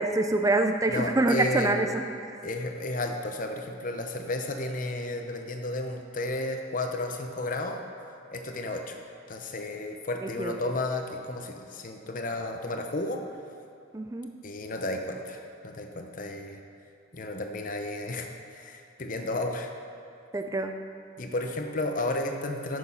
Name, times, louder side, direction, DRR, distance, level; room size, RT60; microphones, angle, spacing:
voice 1, 0.0-2.4 10.2-10.6 13.9-14.3 20.3-20.8, right 2 dB, 15° right, 6 dB, 0.4 m, -26 dB
voice 2, 0.9-1.9 2.4-7.8 8.3-9.0 9.3-13.2 14.4-16.6 17.1-19.7 21.2-22.8, left 2 dB, 45° left, 4 dB, 0.8 m, -33 dB
8.8 x 6.5 x 5.7 m, 2.5 s
head